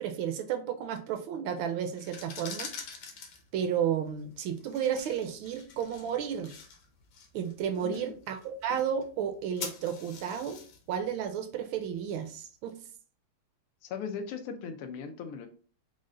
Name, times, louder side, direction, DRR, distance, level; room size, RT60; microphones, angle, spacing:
voice 1, 0.0-2.7 3.5-6.5 7.3-10.6 10.9-12.8, right 8 dB, 75° right, 6 dB, 1.3 m, -32 dB
sound 1, 1.9-12.7, left 5 dB, 65° left, 1.2 m, -47 dB
voice 2, 7.8-8.1 13.8-15.5, left 6 dB, 85° left, 7 dB, 1.6 m, -38 dB
5.1 x 2.1 x 3.7 m, 0.41 s
omnidirectional pair, 2.3 m